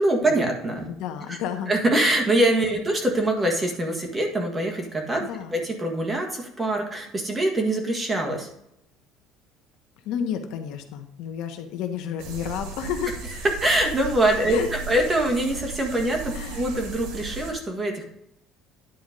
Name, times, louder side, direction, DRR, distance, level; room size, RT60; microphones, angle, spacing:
voice 1, 0.0-0.9 1.3-1.4 1.7-5.2 5.5-8.5 13.6-14.6 14.9-18.0, right 1 dB, 15° right, 2 dB, 1.7 m, -24 dB
voice 2, 0.9-1.7 5.2-5.6 10.0-13.2 14.5-14.7 16.3-16.6, left 8 dB, 70° left, 5 dB, 1.1 m, -31 dB
sound 1, 12.2-17.5, right 4 dB, 80° right, 2.0 m, -36 dB
10.5 x 4.3 x 5.2 m, 0.78 s
cardioid pair, 150°, 0 cm